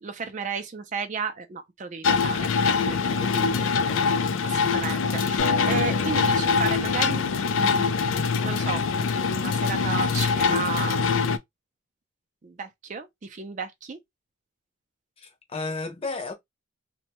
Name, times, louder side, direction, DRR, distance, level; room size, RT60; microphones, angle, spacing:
voice 1, 0.0-3.5 3.9-4.1 4.4-8.0 8.4-11.1 12.4-14.0, right 5 dB, 35° right, 0.4 m, -34 dB
sound 1, 2.0-11.4, left 5 dB, 65° left, 0.3 m, -24 dB
voice 2, 3.1-4.1 15.2-16.3, left 3 dB, 25° left, 0.6 m, -34 dB
sound 2, 5.4-8.6, left 3 dB, 85° left, 0.7 m, -36 dB
2.6 x 2.1 x 2.9 m
head